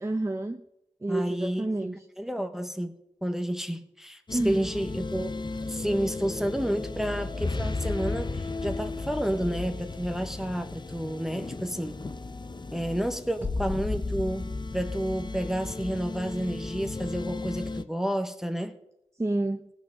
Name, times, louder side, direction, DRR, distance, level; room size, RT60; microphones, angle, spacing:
voice 1, 0.0-0.6 1.0-2.0 4.3-4.7 19.2-19.7, right 2 dB, 20° right, 7 dB, 0.6 m, -29 dB
voice 2, 1.1-1.9 2.2-5.3 5.7-12.0 12.7-18.7, equal, 5° right, 7 dB, 1.0 m, -30 dB
sound 1, 4.3-17.8, left 3 dB, 35° left, 0.6 m, -34 dB
17.0 x 6.1 x 6.6 m, 0.83 s
wide cardioid pair, 60°, 14 cm